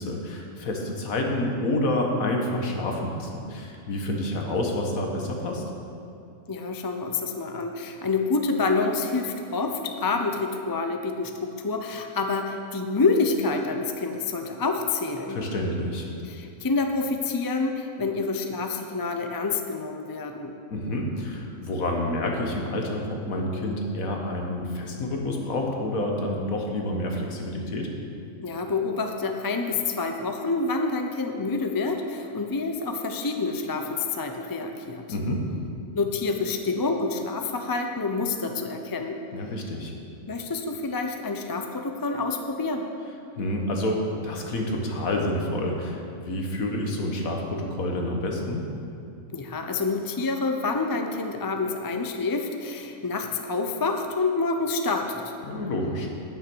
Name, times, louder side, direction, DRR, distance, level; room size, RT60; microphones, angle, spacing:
voice 1, 0.0-5.6 15.3-16.1 20.7-27.9 35.1-35.5 39.3-39.9 43.4-48.6 55.4-56.1, left 1 dB, 80° left, 1 dB, 1.8 m, -28 dB
voice 2, 6.5-15.4 16.3-20.5 28.4-35.1 36.0-39.2 40.3-42.9 49.3-55.3, left 3 dB, 30° left, 5 dB, 0.4 m, -27 dB
9.6 x 9.3 x 6.2 m, 2.6 s
omnidirectional pair, 1.4 m